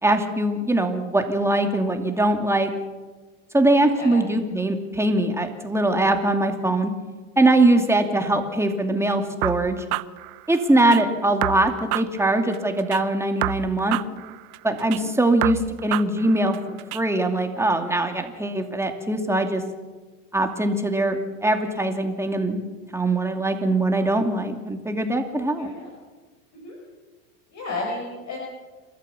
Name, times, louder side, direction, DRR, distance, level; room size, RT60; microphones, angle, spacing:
voice 1, 0.0-2.7 3.5-6.9 7.4-9.8 10.5-14.0 14.6-19.6 20.3-22.6 22.9-25.7, right 2 dB, 5° right, 4 dB, 2.6 m, -22 dB
sound 1, 9.4-11.0 11.4-13.0 13.4-15.0 15.4-17.0, right 19 dB, 70° right, 0.8 m, -29 dB
voice 2, 25.3-25.9 26.6-26.8 27.5-28.4, left 2 dB, 40° left, -1 dB, 5.1 m, -33 dB
28.0 x 13.5 x 7.1 m, 1.3 s
hypercardioid pair, 105°, 45 cm